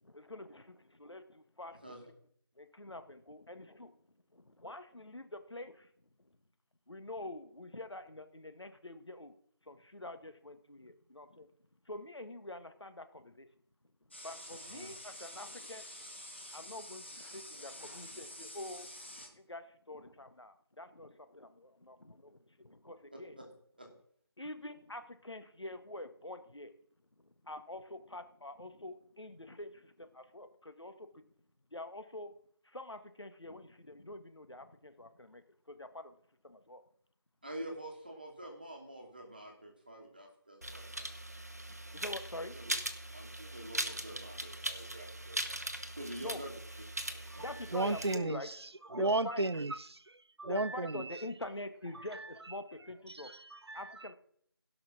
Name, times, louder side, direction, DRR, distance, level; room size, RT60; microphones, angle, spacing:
voice 1, 0.0-1.9 2.6-3.9 4.3-5.9 6.9-9.3 9.6-11.5 11.8-13.5 14.2-16.2 16.5-18.9 19.1-23.4 24.4-26.7 27.2-31.2 31.7-32.3 32.6-36.1 36.4-36.8 41.9-42.5 46.2-46.4 47.4-48.5 48.9-49.6 50.4-53.3 53.7-54.1, left 1 dB, 80° left, 1.8 m, -46 dB
sound 1, 14.1-19.3, left 1 dB, 25° left, 1.3 m, -48 dB
voice 2, 14.6-14.9 23.1-23.4 23.8-23.9 37.4-41.1 42.5-42.6 43.1-45.6 45.9-46.5 47.1-47.6, right 1 dB, 20° right, 1.5 m, -47 dB
sound 2, 40.6-48.2, right 1 dB, 35° right, 0.9 m, -40 dB
voice 3, 47.7-48.5 48.9-51.2 51.9-52.2 53.2-53.9, right 2 dB, 70° right, 0.6 m, -34 dB
16.5 x 5.9 x 6.0 m
figure-of-eight pair, 180°, 14 cm